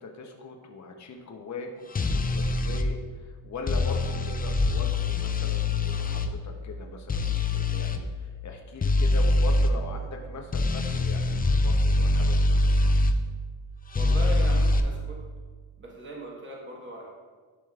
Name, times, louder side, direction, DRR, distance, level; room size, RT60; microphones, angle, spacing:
voice 1, 0.0-13.0, left 3 dB, 35° left, 2 dB, 0.7 m, -40 dB
sound 1, 1.9-2.9 3.7-6.3 7.1-8.0 8.8-9.7 10.5-13.2 13.9-14.8, left 2 dB, 20° left, 0.3 m, -24 dB
voice 2, 13.9-15.2 15.8-17.1, right 1 dB, 25° right, -3 dB, 1.3 m, -39 dB
11.0 x 5.0 x 2.4 m, 1.4 s
wide cardioid pair, 100°, 49 cm